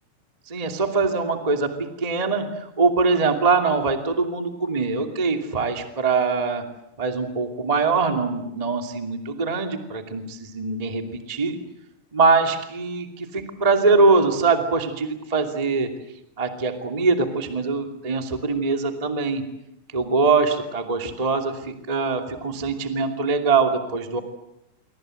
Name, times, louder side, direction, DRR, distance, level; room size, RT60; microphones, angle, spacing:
voice 1, 0.5-6.6 7.0-11.6 12.1-15.9 16.4-19.4 19.9-24.2, right 4 dB, 20° right, 5 dB, 1.0 m, -23 dB
27.0 x 24.5 x 7.9 m, 0.84 s
omnidirectional pair, 5.7 m